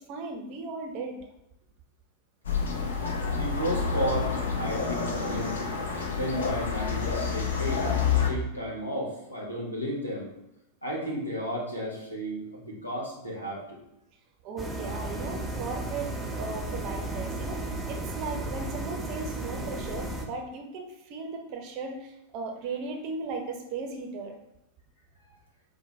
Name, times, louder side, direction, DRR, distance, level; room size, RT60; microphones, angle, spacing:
voice 1, 0.1-1.2 14.4-17.6 17.9-24.4, right 4 dB, 40° right, 3 dB, 0.6 m, -36 dB
sound 1, 2.4-8.3, left 5 dB, 65° left, 0.5 m, -28 dB
voice 2, 3.3-5.6 6.0-7.9 8.3-10.3 10.8-13.8, equal, 85° left, -4 dB, 1.1 m, -33 dB
sound 2, 14.6-20.2, right 2 dB, 5° left, 0.6 m, -34 dB
4.7 x 2.2 x 3.1 m, 0.87 s
figure-of-eight pair, 90°, 0 cm